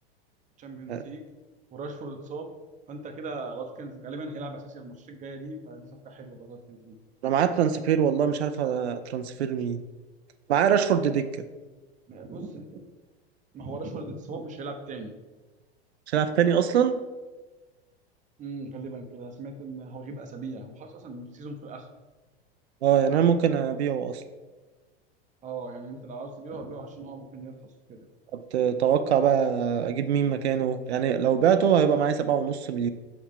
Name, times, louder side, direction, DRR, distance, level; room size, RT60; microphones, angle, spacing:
voice 1, 0.6-1.3 1.7-2.5 2.9-7.0 12.1-12.8 13.5-15.2 18.4-21.9 25.4-28.1, right 3 dB, 25° right, 5 dB, 0.7 m, -39 dB
voice 2, 7.2-9.8 10.5-11.3 16.1-17.0 22.8-24.2 28.3-32.9, right 8 dB, 85° right, 10 dB, 0.5 m, -23 dB
5.8 x 4.8 x 3.6 m, 1.2 s
hypercardioid pair, 100°, 32 cm